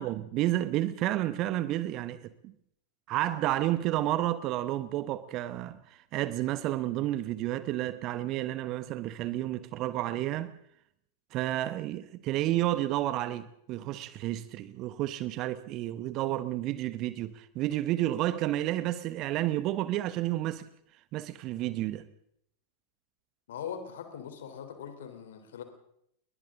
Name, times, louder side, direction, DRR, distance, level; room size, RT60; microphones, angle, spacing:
voice 1, 0.0-2.5 3.1-10.5 11.3-20.6 21.1-22.1, right 14 dB, 40° right, 1.1 m, -31 dB
voice 2, 23.5-25.6, left 8 dB, 60° left, 3.6 m, -41 dB
30.0 x 22.5 x 3.8 m
figure-of-eight pair, 90°, 0 cm